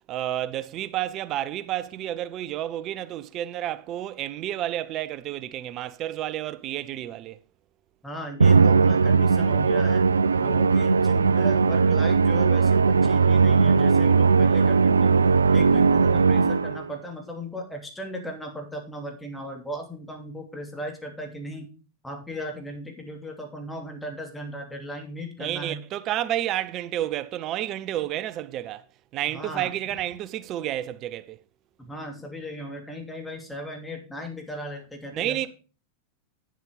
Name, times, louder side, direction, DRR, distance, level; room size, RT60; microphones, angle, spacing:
voice 1, 0.0-7.4 25.4-28.8 29.1-31.4 35.1-35.5, right 13 dB, 35° right, 0.6 m, -30 dB
voice 2, 8.0-10.0 10.4-15.1 15.5-21.7 22.0-25.8 29.3-29.7 31.8-35.5, equal, 5° left, 2.8 m, -37 dB
Musical instrument, 8.4-16.9, right 5 dB, 75° right, 0.4 m, -19 dB
9.8 x 7.6 x 5.0 m
figure-of-eight pair, 90°, 0 cm